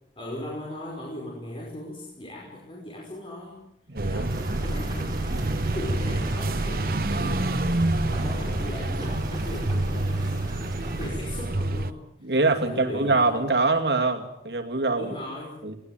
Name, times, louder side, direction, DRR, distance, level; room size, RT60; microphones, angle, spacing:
voice 1, 0.2-3.6 4.0-12.0 12.5-13.3 15.0-15.6, left 1 dB, 30° left, -3 dB, 5.3 m, -38 dB
voice 2, 3.9-4.6 12.2-15.2 15.6-15.8, right 3 dB, 70° right, 5 dB, 2.6 m, -24 dB
sound 1, 4.0-11.9, right 2 dB, 55° right, 1.0 m, -27 dB
sound 2, 4.3-11.1, right 1 dB, 25° right, 6.2 m, -38 dB
21.5 x 19.5 x 9.2 m, 0.76 s
head